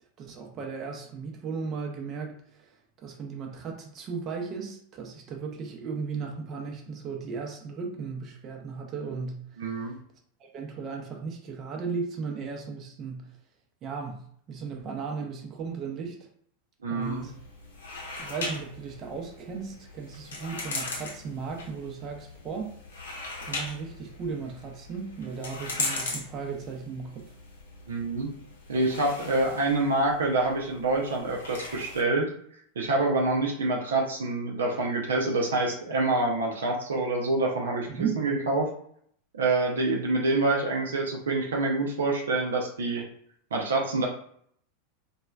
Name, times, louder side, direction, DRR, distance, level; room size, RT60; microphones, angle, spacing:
voice 1, 0.2-2.7 3.0-9.9 10.4-13.3 13.8-16.2 16.9-17.4 18.2-22.7 23.4-27.2 37.9-38.2, right 5 dB, 35° right, 1 dB, 0.6 m, -36 dB
voice 2, 9.6-9.9 16.8-17.3 27.9-28.3 28.7-32.3 32.8-38.7 39.3-43.0 43.5-44.1, right 2 dB, 75° right, 0 dB, 0.5 m, -26 dB
sound 1, 17.0-32.0, left 3 dB, 75° left, 0.7 m, -39 dB
2.9 x 2.3 x 2.3 m, 0.64 s
hypercardioid pair, 90°, 0 cm